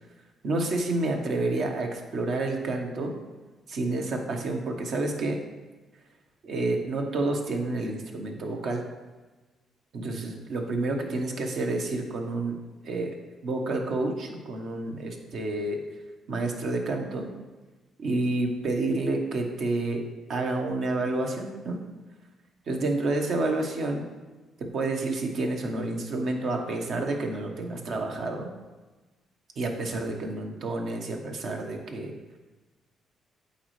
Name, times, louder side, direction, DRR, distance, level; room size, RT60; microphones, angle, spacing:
voice 1, 0.4-3.1 3.7-5.4 6.4-8.8 9.9-12.6 12.8-13.2 13.4-15.8 16.3-17.3 18.0-20.0 20.3-21.8 22.7-24.1 24.6-28.5 29.6-32.1, right 2 dB, 60° right, 3 dB, 1.0 m, -29 dB
8.4 x 4.0 x 3.2 m, 1.2 s
cardioid pair, 90°, 0 cm